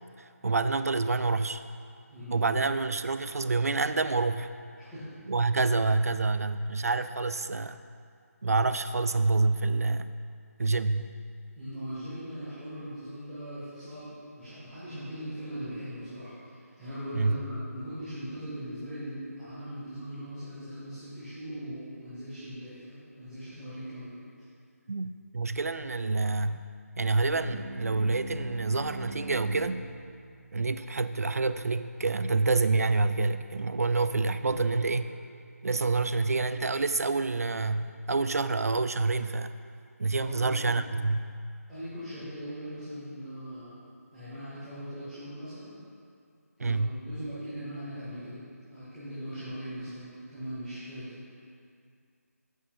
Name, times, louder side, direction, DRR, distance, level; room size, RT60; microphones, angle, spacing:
voice 1, 0.4-1.6 2.3-4.5 5.3-7.8 8.4-10.1 10.6-11.1 17.1-17.4 24.9-26.6 27.0-29.8 30.5-35.1 35.6-39.5 40.0-41.3 46.6-47.0, right 3 dB, 65° right, 11 dB, 0.4 m, -27 dB
voice 2, 2.1-2.6 4.8-5.0 11.5-24.1 24.4-24.5 34.4-34.6 34.9-35.0 40.2-40.6 41.7-43.7 44.1-45.7 46.6-48.4 48.7-51.1, equal, 5° left, -19 dB, 2.1 m, -40 dB
sound 1, 27.3-32.2, right 1 dB, 50° right, 0.9 m, -43 dB
11.0 x 8.1 x 2.7 m, 2.3 s
figure-of-eight pair, 155°, 9 cm